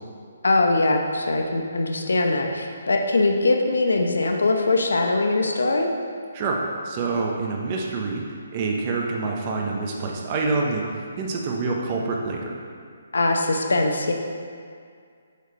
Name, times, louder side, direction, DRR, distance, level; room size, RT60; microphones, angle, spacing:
voice 1, 0.4-5.9 13.1-14.1, left 2 dB, 65° left, 3 dB, 0.5 m, -21 dB
voice 2, 6.8-8.2 8.5-12.6, right 3 dB, 30° right, 0 dB, 0.6 m, -26 dB
6.6 x 4.5 x 3.1 m, 2.2 s
figure-of-eight pair, 140°, 0 cm